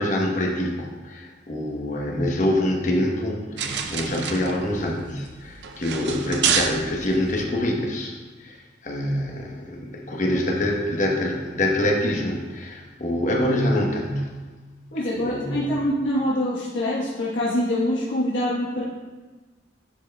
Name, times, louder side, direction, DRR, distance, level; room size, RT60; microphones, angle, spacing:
voice 1, 0.0-8.1 8.4-14.4 15.1-15.6, left 1 dB, 40° left, 0 dB, 1.0 m, -25 dB
sound 1, 3.6-7.4, right 7 dB, 65° right, 0.5 m, -28 dB
voice 2, 14.9-18.8, left 1 dB, 80° left, -7 dB, 1.2 m, -25 dB
10.5 x 6.2 x 2.3 m, 1.3 s
head